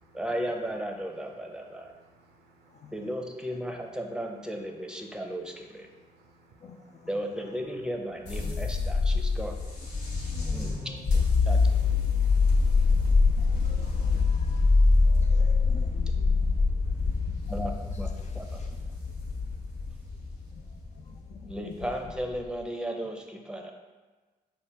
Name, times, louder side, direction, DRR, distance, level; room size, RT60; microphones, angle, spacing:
voice 1, 0.1-1.9 2.9-5.9 7.1-9.6 10.5-10.8 11.4-11.7 17.5-18.6 21.5-23.7, equal, 5° right, 2 dB, 0.7 m, -35 dB
voice 2, 1.6-2.9 5.9-7.1 8.9-9.4 10.0-10.8, right 2 dB, 75° right, 2 dB, 0.6 m, -60 dB
sound 1, 8.2-22.4, left 4 dB, 85° left, 1.2 m, -25 dB
voice 3, 13.4-14.7 15.1-16.4 17.3-17.4 21.4-21.5, left 5 dB, 45° left, 6 dB, 0.4 m, -47 dB
5.3 x 2.2 x 3.3 m, 1.3 s
supercardioid pair, 50°, 17 cm